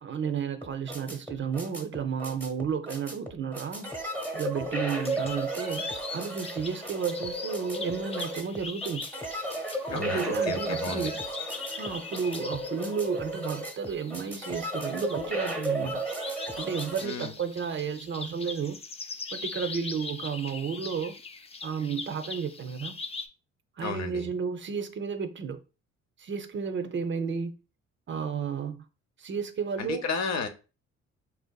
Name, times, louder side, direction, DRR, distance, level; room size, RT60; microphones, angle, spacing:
voice 1, 0.0-3.9 4.3-9.1 9.9-11.2 11.8-16.0 16.6-18.8 19.3-21.1 21.6-22.9 23.8-25.6 26.2-27.5 28.1-28.8 29.2-30.0, right 6 dB, 40° right, 0.5 m, -32 dB
sound 1, 0.6-17.1, right 1 dB, 5° left, 0.9 m, -34 dB
sound 2, 4.9-23.3, left 4 dB, 20° left, 0.4 m, -41 dB
voice 2, 9.9-11.1 17.0-17.3 23.8-24.3 29.8-30.5, left 4 dB, 60° left, 0.7 m, -32 dB
4.3 x 2.6 x 2.2 m
cardioid pair, 90°, 30 cm